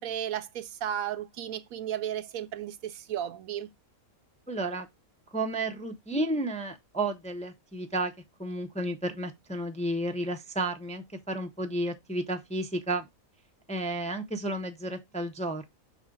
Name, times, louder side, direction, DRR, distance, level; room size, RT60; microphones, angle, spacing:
voice 1, 0.0-3.7, right 10 dB, 80° right, 1.1 m, -34 dB
voice 2, 4.5-4.9 5.3-8.1 8.4-13.1 13.7-15.6, right 1 dB, 5° left, 0.5 m, -32 dB
6.1 x 4.1 x 3.8 m
omnidirectional pair, 1.5 m